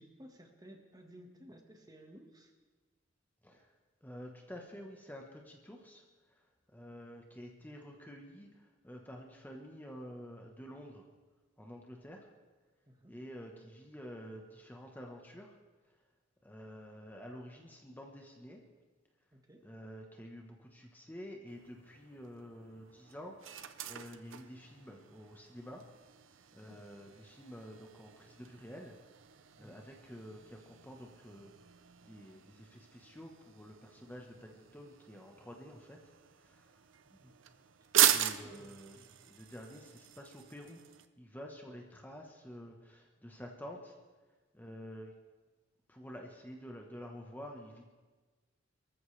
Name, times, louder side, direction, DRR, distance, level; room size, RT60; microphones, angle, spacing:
voice 1, 0.0-2.5 12.9-13.1 19.3-19.7 26.6-26.8 29.6-29.8 37.1-37.4 37.8-39.1, equal, 20° right, 3 dB, 1.5 m, -57 dB
voice 2, 4.0-6.0 6.3-6.4 6.7-11.1 11.6-12.3 13.1-15.5 16.4-18.6 19.6-25.8 26.5-28.9 29.6-31.5 32.0-36.0 36.4-36.7 38.1-40.8 41.2-44.0 44.5-45.1 45.9-47.9, equal, 10° left, 1 dB, 1.1 m, -49 dB
sound 1, 21.5-41.1, right 11 dB, 75° right, 0.7 m, -39 dB
24.0 x 14.0 x 3.3 m, 1.3 s
head